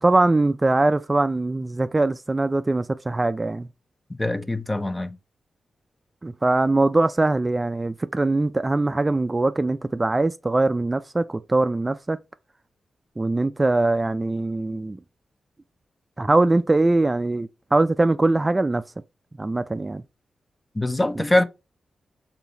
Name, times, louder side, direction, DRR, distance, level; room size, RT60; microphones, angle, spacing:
voice 1, 0.0-3.7 6.2-12.2 13.2-15.0 16.2-18.8 19.4-20.0, right 2 dB, 30° right, 0.4 m, -22 dB
voice 2, 4.2-5.2 20.7-21.4, left 1 dB, 20° left, 0.7 m, -23 dB
4.0 x 3.7 x 2.8 m
supercardioid pair, 45°, 0 cm